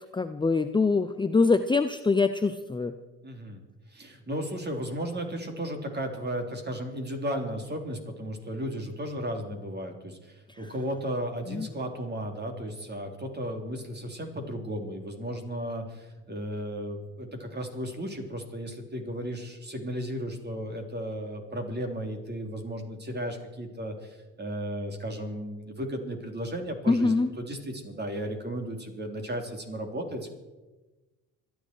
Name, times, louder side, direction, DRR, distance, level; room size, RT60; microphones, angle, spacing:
voice 1, 0.1-2.9 10.5-10.7 11.5-11.7 26.9-27.3, left 4 dB, 15° left, 9 dB, 0.7 m, -24 dB
voice 2, 3.2-3.6 3.9-30.3, equal, 30° right, 4 dB, 3.6 m, -35 dB
26.0 x 10.5 x 4.7 m, 1.2 s
hypercardioid pair, 65°, 36 cm